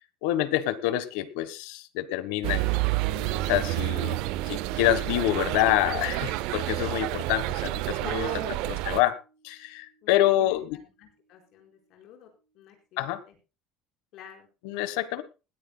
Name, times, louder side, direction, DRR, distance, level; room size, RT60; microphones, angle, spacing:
voice 1, 0.2-2.8 3.5-4.2 4.4-8.3 8.7-9.2 9.4-10.8 13.0-13.2 14.6-15.2, left 14 dB, 80° left, 14 dB, 1.3 m, -27 dB
sound 1, 2.4-9.0, right 19 dB, 65° right, 0.6 m, -29 dB
Bass guitar, 3.1-10.3, right 1 dB, 65° left, 6.8 m, -49 dB
Wind instrument woodwind instrument, 3.1-7.3, left 4 dB, 20° left, 4.2 m, -56 dB
voice 2, 8.0-8.6 10.0-13.4 14.1-14.5, left 8 dB, 50° left, 2 dB, 4.8 m, -47 dB
20.0 x 14.0 x 2.3 m, 0.30 s
cardioid pair, 175°, 0 cm